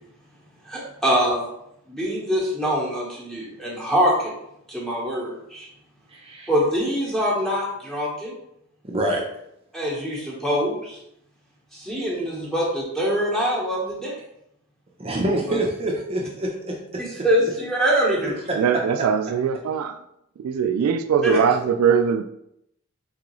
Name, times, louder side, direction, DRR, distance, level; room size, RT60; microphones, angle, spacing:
voice 1, 0.6-1.4 1.9-4.3 4.7-5.7 6.5-8.3 9.7-11.0 11.7-14.2 15.5-15.6 17.0-18.3 21.2-21.4, equal, ahead, 1.0 m, -24 dB
voice 2, 6.1-6.5 8.8-9.2 15.0-17.0 18.5-18.6 21.3-21.4, right 1 dB, 25° right, 0.5 m, -26 dB
voice 3, 18.6-20.0 20.4-22.2, right 7 dB, 80° right, 0.3 m, -21 dB
3.8 x 3.7 x 3.0 m
head